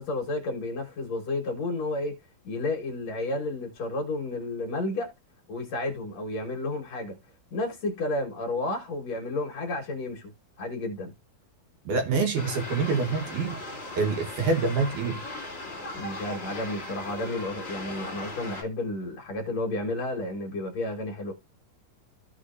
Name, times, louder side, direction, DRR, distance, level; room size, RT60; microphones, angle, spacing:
voice 1, 0.0-2.2 2.4-5.1 5.5-7.2 7.5-10.3 10.6-11.1 15.9-21.3, left 2 dB, 55° left, 2.4 m, -31 dB
voice 2, 11.9-13.6 14.0-15.2, right 4 dB, 65° right, 2.7 m, -26 dB
sound 1, 12.3-18.6, left 2 dB, 25° left, 2.6 m, -38 dB
14.5 x 4.9 x 2.6 m
omnidirectional pair, 4.1 m